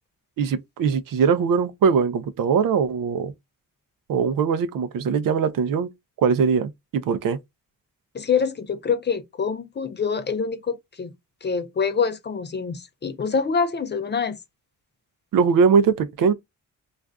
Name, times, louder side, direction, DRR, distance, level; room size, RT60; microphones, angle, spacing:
voice 1, 0.4-3.3 4.1-5.9 6.2-7.4 15.3-16.3, right 6 dB, 75° right, 0.5 m, -21 dB
voice 2, 8.1-11.1 11.4-14.4, left 5 dB, 35° left, 0.4 m, -25 dB
2.5 x 2.4 x 3.3 m
wide cardioid pair, 145°, 33 cm